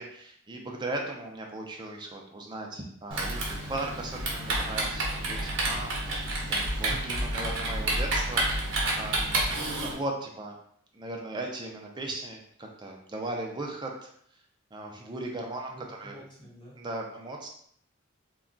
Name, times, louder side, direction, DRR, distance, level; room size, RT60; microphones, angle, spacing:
voice 1, 0.0-9.5 9.8-10.6 10.9-14.1 14.7-16.2 16.8-17.5, right 2 dB, 20° right, 0 dB, 0.4 m, -37 dB
Typing, 3.1-9.9, right 2 dB, 65° right, 0.7 m, -29 dB
voice 2, 15.7-16.8, equal, 20° left, -6 dB, 1.0 m, -49 dB
2.2 x 2.2 x 3.7 m, 0.66 s
head